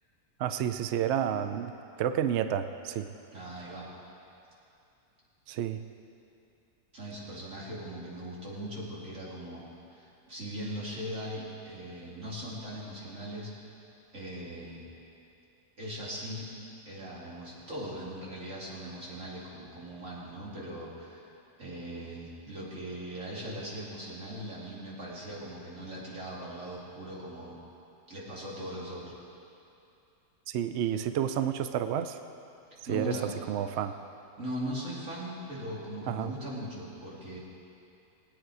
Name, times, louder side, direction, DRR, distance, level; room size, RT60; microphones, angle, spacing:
voice 1, 0.4-3.1 5.5-5.8 30.5-32.2 32.9-33.2 33.5-33.9 36.1-36.3, right 9 dB, 80° right, 9 dB, 0.6 m, -30 dB
voice 2, 3.3-3.9 6.9-9.6 9.9-13.5 14.1-14.9 15.8-16.5 16.8-21.3 21.6-27.6 28.1-29.1 32.9-33.3 34.4-37.4, equal, 45° right, -6 dB, 3.1 m, -39 dB
20.0 x 9.1 x 4.8 m, 2.7 s
omnidirectional pair, 1.8 m